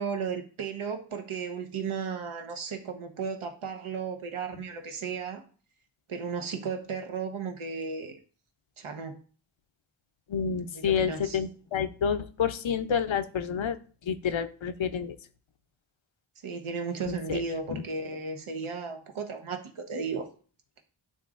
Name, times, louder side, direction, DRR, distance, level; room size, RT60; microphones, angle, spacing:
voice 1, 0.0-5.4 6.1-8.2 8.8-9.2 10.6-11.4 16.4-20.3, right 5 dB, 90° right, 4 dB, 0.9 m, -35 dB
voice 2, 10.3-13.8 14.1-15.2 17.1-17.4 17.7-17.8, left 7 dB, 70° left, 10 dB, 0.7 m, -29 dB
10.5 x 3.7 x 2.4 m, 0.40 s
cardioid pair, 45°, 48 cm